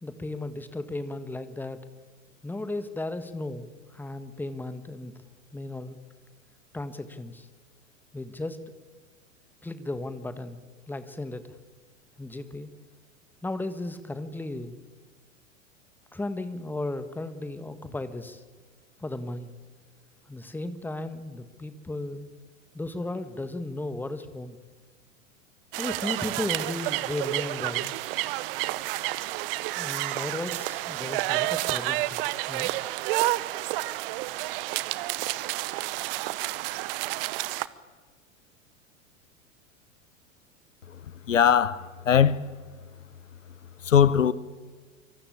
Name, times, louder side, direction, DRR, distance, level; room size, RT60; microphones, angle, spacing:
voice 1, 0.0-1.8 2.4-5.1 5.5-6.0 6.7-7.5 8.1-8.6 9.6-10.6 10.9-11.5 12.2-12.7 13.4-14.8 16.1-18.4 19.0-19.5 20.3-22.3 22.7-24.6 25.8-27.9 29.7-32.2 32.5-32.7, left 2 dB, 5° left, 1.6 m, -35 dB
sound 1, 25.7-37.7, right 18 dB, 45° right, 1.2 m, -30 dB
voice 2, 41.3-42.5 43.8-44.3, left 8 dB, 70° left, 1.1 m, -21 dB
25.5 x 24.5 x 8.8 m
figure-of-eight pair, 90°, 39 cm